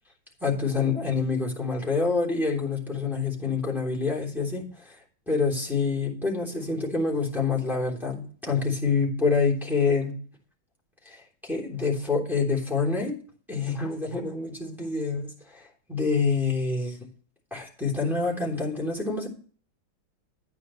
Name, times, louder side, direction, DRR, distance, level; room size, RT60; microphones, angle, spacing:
voice 1, 0.4-4.7 5.3-10.2 11.0-11.2 11.4-13.2 13.5-15.6 15.9-17.0 17.5-19.3, left 4 dB, ahead, -3 dB, 3.2 m, -26 dB
11.5 x 9.1 x 3.2 m, 0.43 s
omnidirectional pair, 2.3 m